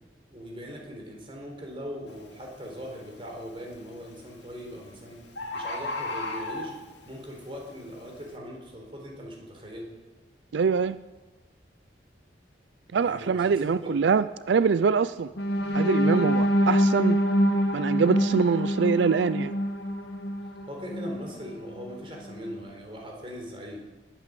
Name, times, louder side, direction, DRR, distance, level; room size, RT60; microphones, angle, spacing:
voice 1, 0.3-5.2 5.5-6.7 7.1-9.9 13.0-13.9 16.1-16.3 20.6-23.8, equal, 30° right, 1 dB, 4.0 m, -40 dB
Bird, 2.1-2.3 2.9-3.3 4.3-4.4 4.7-4.8 5.0-5.1 5.4-7.1 7.7-7.8, left 2 dB, 90° left, 2.4 m, -33 dB
voice 2, 10.5-11.0 12.9-15.3 15.7-17.2 17.7-19.5, right 5 dB, 85° right, 15 dB, 0.4 m, -24 dB
sound 1, 15.4-21.3 21.8-21.9 22.3-22.5, equal, 75° left, 1.5 m, -25 dB
20.5 x 9.1 x 7.6 m, 1.2 s
head